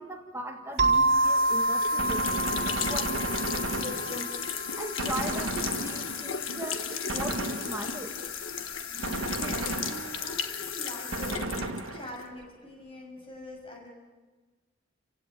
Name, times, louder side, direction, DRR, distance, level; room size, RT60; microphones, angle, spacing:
voice 1, 0.0-3.2 3.6-4.3 4.8-8.1, right 1 dB, 15° right, 1 dB, 1.6 m, -39 dB
sound 1, 0.8-12.3, left 7 dB, 80° left, 1.4 m, -35 dB
sound 2, 0.8-5.2, right 2 dB, 35° right, 7.2 m, -27 dB
Gunshot gunfire, 2.0-4.5 5.0-6.4 7.1-8.1 9.0-10.4 11.1-12.3, right 2 dB, 85° right, 1.6 m, -34 dB
voice 2, 9.1-13.9, equal, 25° left, 1 dB, 6.2 m, -44 dB
29.5 x 16.0 x 9.3 m, 1.3 s
head